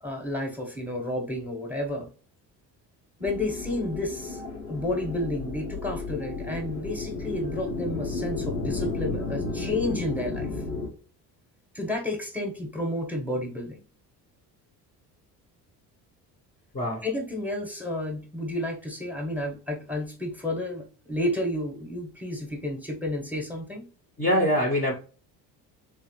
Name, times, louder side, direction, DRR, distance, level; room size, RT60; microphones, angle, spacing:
voice 1, 0.0-2.1 3.2-4.4 4.7-10.5 11.7-13.8 17.0-23.9, left 1 dB, 5° right, 1.1 m, -31 dB
sound 1, 3.2-10.9, left 3 dB, 90° left, 0.9 m, -33 dB
voice 2, 16.7-17.1 24.2-24.9, equal, 20° left, 0.8 m, -23 dB
3.3 x 3.2 x 3.1 m
figure-of-eight pair, 55°, 48 cm